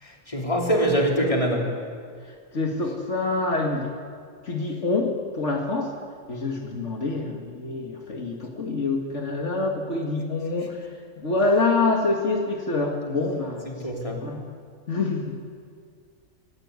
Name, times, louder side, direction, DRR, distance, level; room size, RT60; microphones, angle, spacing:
voice 1, 0.0-1.7 13.7-14.3, equal, 25° left, 0 dB, 3.3 m, -24 dB
voice 2, 2.2-3.9 4.4-5.9 6.3-10.9 11.2-13.7 14.2-14.4 14.9-15.3, left 3 dB, 65° left, 1 dB, 2.1 m, -26 dB
25.0 x 14.5 x 9.5 m, 2.1 s
omnidirectional pair, 1.4 m